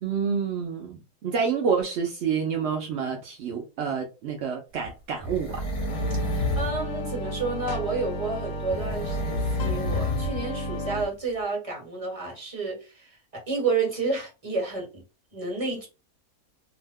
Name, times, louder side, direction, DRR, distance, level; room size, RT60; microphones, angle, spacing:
voice 1, 0.0-5.6, right 6 dB, 75° right, 0.6 m, -28 dB
sound 1, 4.8-6.8 8.7-10.4 10.7-10.8, left 1 dB, 55° left, 1.3 m, -29 dB
sound 2, 5.9-11.1, equal, 85° left, 1.1 m, -33 dB
voice 2, 6.1-15.0 15.3-15.9, right 4 dB, 25° right, 1.1 m, -30 dB
2.8 x 2.1 x 3.4 m
omnidirectional pair, 1.7 m